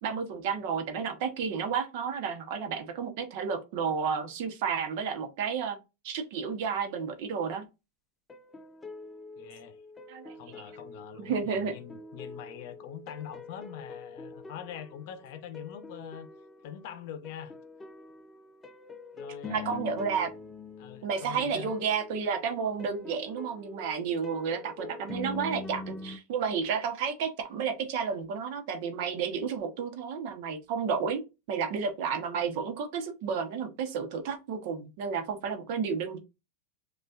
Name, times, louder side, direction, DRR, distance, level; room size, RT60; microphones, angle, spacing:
voice 1, 0.0-5.8 6.0-7.6 10.1-10.3 11.2-11.7 19.5-20.3 21.0-31.2 31.5-36.2, right 6 dB, 60° right, 0.9 m, -31 dB
sound 1, 8.3-26.2, left 3 dB, 15° left, 0.4 m, -45 dB
voice 2, 9.4-9.8 10.3-16.3 16.6-17.5 19.1-19.8 20.8-21.7, left 9 dB, 60° left, 0.6 m, -44 dB
6.5 x 2.4 x 2.4 m
supercardioid pair, 125°, 0 cm